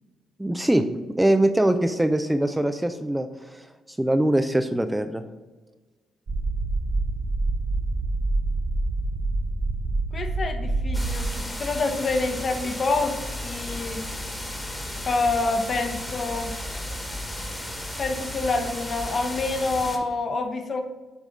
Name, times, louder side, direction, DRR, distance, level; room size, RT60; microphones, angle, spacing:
voice 1, 0.4-5.2, right 1 dB, 10° right, 8 dB, 0.4 m, -23 dB
sound 1, 6.3-11.2, right 2 dB, 40° right, 0.7 m, -26 dB
voice 2, 10.1-14.1 15.1-16.6 18.0-20.8, left 3 dB, 45° left, 6 dB, 1.0 m, -27 dB
sound 2, 10.9-20.0, left 1 dB, 10° left, 1.3 m, -34 dB
7.2 x 3.5 x 5.3 m, 1.2 s
cardioid pair, 90°, 0 cm